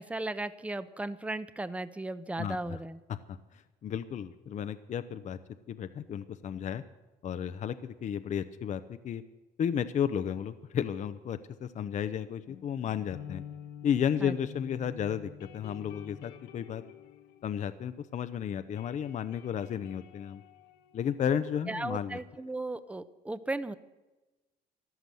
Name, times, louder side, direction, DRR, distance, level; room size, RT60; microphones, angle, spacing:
voice 1, 0.0-3.0 14.2-14.3 21.7-23.8, right 2 dB, 10° right, 13 dB, 0.8 m, -36 dB
voice 2, 2.4-2.8 3.1-5.4 5.7-6.8 7.2-9.2 9.6-13.4 13.8-16.8 17.4-20.4 20.9-22.2, left 8 dB, 45° left, 11 dB, 0.7 m, -33 dB
sound 1, 12.5-18.3 18.5-22.0, left 9 dB, 85° left, 1.2 m, -49 dB
14.0 x 12.0 x 7.7 m, 1.1 s
cardioid pair, 110°, 17 cm